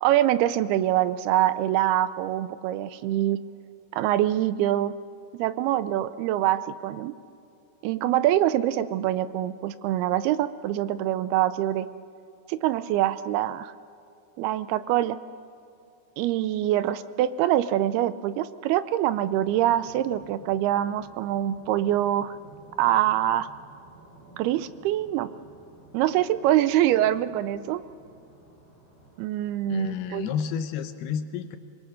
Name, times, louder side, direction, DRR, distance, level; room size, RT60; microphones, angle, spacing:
voice 1, 0.0-3.4 3.9-5.0 5.3-7.1 7.8-11.9 12.5-13.7 14.4-15.2 16.2-22.4 22.8-23.5 24.4-25.3 25.9-27.8 29.2-30.3, right 13 dB, 80° right, 14 dB, 2.3 m, -24 dB
sound 1, 19.1-29.9, right 2 dB, 20° right, 7.8 m, -52 dB
voice 2, 29.7-31.6, left 8 dB, 75° left, 9 dB, 2.6 m, -31 dB
26.0 x 21.0 x 6.4 m, 2.6 s
omnidirectional pair, 5.0 m